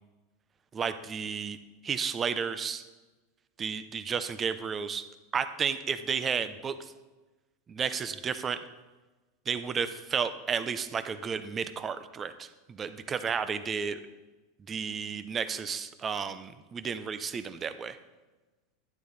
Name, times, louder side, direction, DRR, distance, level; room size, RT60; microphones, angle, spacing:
voice 1, 0.7-1.6 1.8-2.8 3.6-5.0 5.3-6.7 7.7-8.6 9.5-14.0 14.7-18.0, right 6 dB, 25° right, 12 dB, 0.7 m, -32 dB
11.5 x 9.8 x 4.1 m, 1.2 s
supercardioid pair, 120°, 0 cm